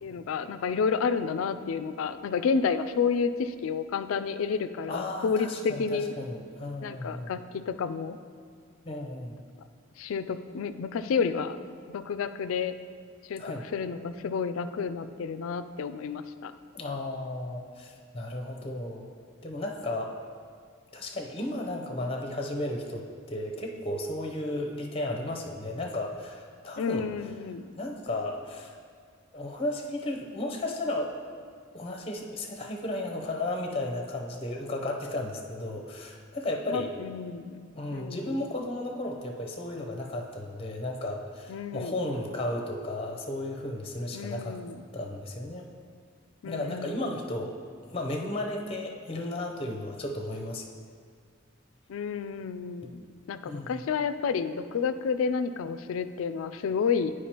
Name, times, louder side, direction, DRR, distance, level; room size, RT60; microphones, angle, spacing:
voice 1, 0.0-6.1 6.8-8.2 10.0-11.6 11.9-12.7 13.2-16.5 18.6-18.7 26.8-27.7 36.7-38.4 41.5-42.0 44.1-44.9 46.4-47.1 51.9-53.0 53.3-57.1, left 5 dB, 75° left, 11 dB, 0.3 m, -30 dB
voice 2, 4.9-7.4 8.8-9.4 13.4-13.6 16.7-19.1 19.4-20.2 20.9-27.1 27.8-28.7 29.3-31.1 31.7-36.9 37.7-44.6 44.9-45.7 46.4-47.5 47.9-50.6 53.5-53.8, left 1 dB, 25° left, 2 dB, 0.6 m, -34 dB
10.0 x 4.8 x 2.9 m, 2.1 s
head